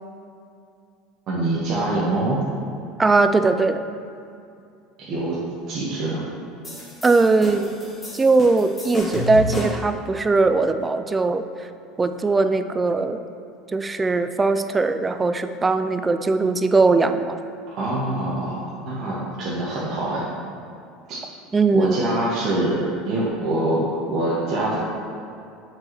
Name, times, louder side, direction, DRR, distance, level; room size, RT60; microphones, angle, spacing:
voice 1, 1.3-2.4 5.0-5.4 5.7-6.2 17.8-20.2 21.1-21.2 21.7-24.8, right 1 dB, 50° right, -7 dB, 1.2 m, -24 dB
voice 2, 3.0-3.8 7.0-7.7 8.1-11.7 12.0-13.2 13.7-17.4 21.5-22.0, right 3 dB, 20° right, 9 dB, 0.3 m, -20 dB
sound 1, 6.6-9.9, left 1 dB, 15° left, 1.5 m, -30 dB
7.4 x 4.6 x 3.1 m, 2.4 s
supercardioid pair, 115°, 0 cm